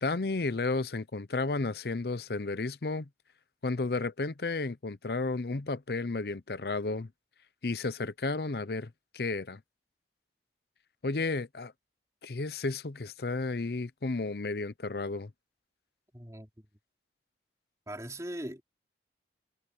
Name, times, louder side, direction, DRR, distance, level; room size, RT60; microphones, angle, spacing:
voice 1, 0.0-3.1 3.6-7.1 7.6-9.6 11.0-11.7 12.2-15.3, left 3 dB, 55° left, 0.7 m, -32 dB
voice 2, 16.1-16.5 17.9-18.6, right 1 dB, 15° right, 3.1 m, -39 dB
head